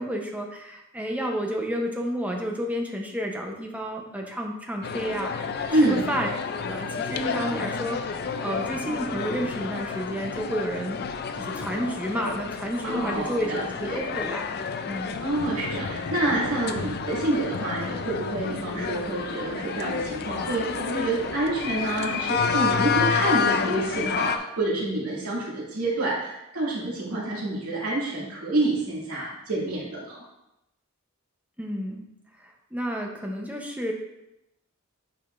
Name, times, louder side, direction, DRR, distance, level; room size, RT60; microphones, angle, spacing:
voice 1, 0.0-6.3 6.6-11.0 11.4-14.6 14.9-15.1 31.6-32.0 32.4-33.9, equal, 5° right, 1 dB, 0.8 m, -31 dB
sound 1, 4.8-24.4, left 5 dB, 45° left, 0.4 m, -30 dB
voice 2, 5.7-6.1 12.8-14.0 14.9-30.2, right 2 dB, 90° right, -6 dB, 2.3 m, -27 dB
9.1 x 5.0 x 2.6 m, 0.88 s
head